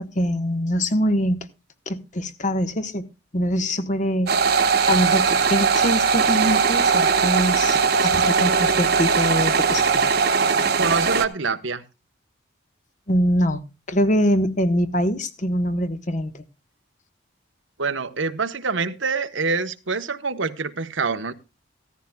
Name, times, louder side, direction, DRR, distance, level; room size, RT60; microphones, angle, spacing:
voice 1, 0.0-1.4 1.9-3.1 3.3-4.3 4.9-10.0 13.1-13.6 13.9-16.4, equal, 35° left, 1.2 m, -23 dB
sound 1, 4.3-11.3, right 5 dB, 50° right, 1.0 m, -19 dB
voice 2, 10.8-11.8 17.8-21.3, right 4 dB, 70° right, 1.1 m, -25 dB
15.5 x 14.0 x 2.2 m
head